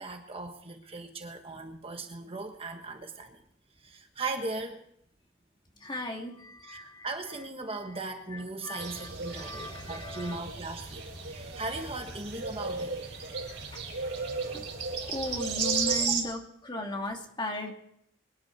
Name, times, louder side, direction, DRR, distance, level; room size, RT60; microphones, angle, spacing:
voice 1, 0.0-3.4 3.8-4.8 6.6-13.0 16.0-16.1, right 3 dB, 30° right, 5 dB, 1.4 m, -38 dB
voice 2, 5.8-7.1 8.3-9.1 9.3-10.4 13.7-13.8 14.5-17.7, left 1 dB, 25° left, 1 dB, 2.6 m, -37 dB
sound 1, 8.8-16.2, right 4 dB, 65° right, 4.7 m, -34 dB
24.5 x 10.5 x 4.6 m, 0.72 s
head